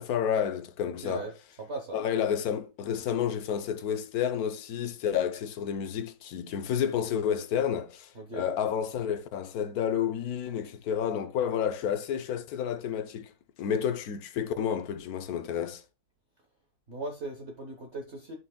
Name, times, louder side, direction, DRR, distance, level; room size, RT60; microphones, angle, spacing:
voice 1, 0.0-1.3 1.9-13.3 13.6-15.8, left 8 dB, 65° left, 1.0 m, -30 dB
voice 2, 1.6-2.0 8.1-8.5 16.9-18.4, right 2 dB, 40° right, 1.1 m, -38 dB
11.0 x 6.0 x 2.2 m
omnidirectional pair, 2.1 m